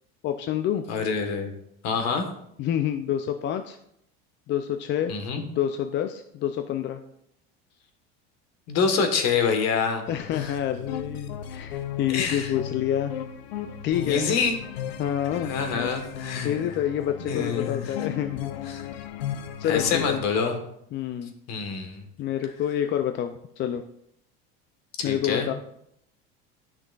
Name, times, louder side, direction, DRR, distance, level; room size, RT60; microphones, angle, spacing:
voice 1, 0.2-0.9 2.6-3.8 4.5-7.0 10.1-13.1 13.8-14.4 15.0-15.5 16.4-18.5 19.6-20.2 20.9-21.3 22.2-23.8 25.0-25.5, left 10 dB, 40° left, 8 dB, 0.4 m, -28 dB
voice 2, 0.9-1.5 1.8-2.3 5.1-5.4 8.7-10.0 10.4-10.5 12.1-12.5 14.0-14.6 15.4-16.7 17.2-17.8 18.7-18.8 19.7-20.5 21.5-22.1 25.0-25.5, left 5 dB, 55° left, 6 dB, 1.4 m, -26 dB
sound 1, 10.1-20.2, left 9 dB, 85° left, 0.7 m, -36 dB
10.5 x 5.9 x 2.4 m, 0.75 s
supercardioid pair, 110°, 31 cm